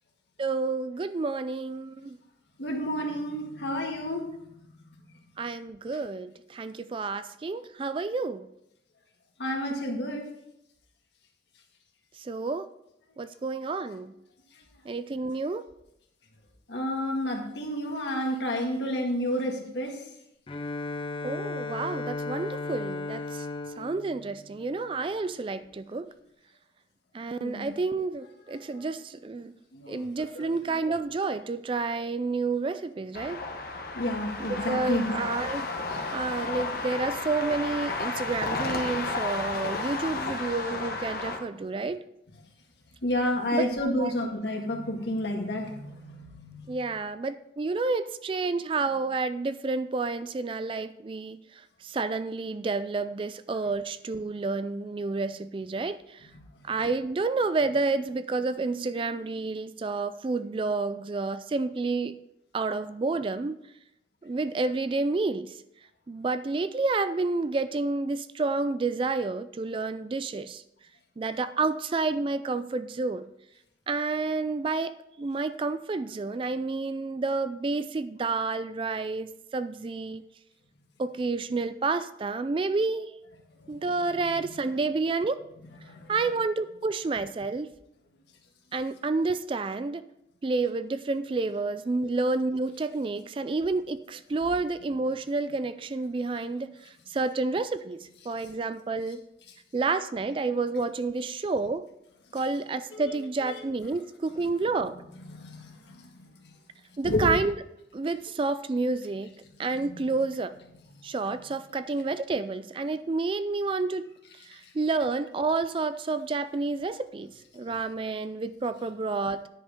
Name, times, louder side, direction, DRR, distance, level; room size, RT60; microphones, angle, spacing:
voice 1, 0.4-2.2 5.4-8.5 12.2-12.7 13.2-14.1 14.9-15.7 21.2-23.5 23.8-26.1 27.1-29.5 29.9-33.4 34.4-35.7 36.1-42.0 43.5-44.1 46.7-51.4 51.8-56.3 56.6-62.2 62.5-63.6 64.2-65.5 66.1-70.6 71.2-73.2 73.9-80.2 81.0-83.1 83.7-85.4 86.1-87.7 88.7-90.0 90.4-99.2 99.7-101.9 102.3-105.0 107.0-107.5 107.9-109.3 109.6-110.5 111.0-114.0 114.5-119.5, right 3 dB, 30° right, 13 dB, 0.3 m, -30 dB
voice 2, 2.6-4.3 9.4-10.2 16.7-20.1 27.4-27.7 28.6-28.8 29.7-30.1 30.4-30.8 34.0-35.2 35.9-36.0 43.0-46.8 56.3-56.4 83.6-83.8 85.6-86.1 102.9-103.1 103.4-103.6 105.3-106.2 107.0-107.3 109.8-110.0, left 1 dB, 75° left, 0 dB, 1.9 m, -31 dB
Bowed string instrument, 20.5-25.2, left 3 dB, 30° left, 0.5 m, -36 dB
sound 1, 33.1-41.4, left 3 dB, 55° left, 1.0 m, -33 dB
10.0 x 5.4 x 5.0 m, 0.81 s
head